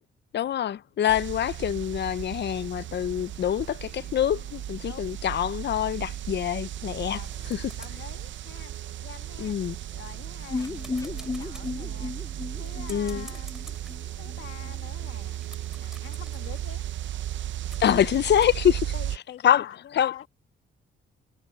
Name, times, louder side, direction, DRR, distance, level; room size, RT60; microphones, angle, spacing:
voice 1, 0.3-7.2 7.5-7.7 9.4-9.8 12.9-13.3 17.8-18.9 19.4-20.2, left 10 dB, 55° left, 0.6 m, -25 dB
sound 1, 1.1-19.2, right 12 dB, 65° right, 0.6 m, -35 dB
voice 2, 4.8-5.2 7.2-7.3 7.8-8.7 9.0-9.6 9.9-12.2 12.5-13.8 14.2-15.4 15.8-16.9 17.8-18.3 18.9-20.3, left 10 dB, 70° left, 2.2 m, -46 dB
sound 2, 7.1-9.0 9.5-18.5, equal, 5° right, 3.1 m, -52 dB
sound 3, 10.5-14.4 14.6-14.7 15.0-15.1, left 3 dB, 15° left, 0.6 m, -35 dB
cardioid pair, 100°, 21 cm